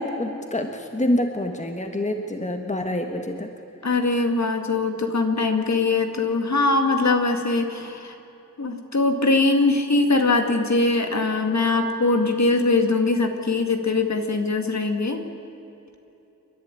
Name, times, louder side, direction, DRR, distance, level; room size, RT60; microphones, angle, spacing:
voice 1, 0.0-3.5, left 1 dB, 20° left, 5 dB, 1.5 m, -26 dB
voice 2, 3.8-8.1 8.6-15.2, left 3 dB, 55° left, 5 dB, 2.3 m, -22 dB
29.5 x 11.5 x 9.8 m, 2.9 s
wide cardioid pair, 95°, 33 cm